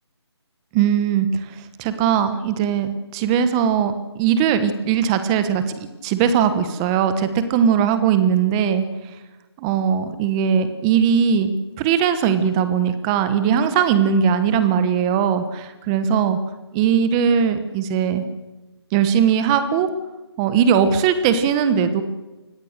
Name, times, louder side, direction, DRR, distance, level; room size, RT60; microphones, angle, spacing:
voice 1, 0.7-1.3 1.8-5.6 6.0-8.9 9.6-11.5 11.8-16.4 16.7-18.2 18.9-19.9 20.4-22.0, right 8 dB, 10° right, 11 dB, 1.1 m, -19 dB
28.0 x 21.0 x 6.6 m, 1.1 s
figure-of-eight pair, 165°, 15 cm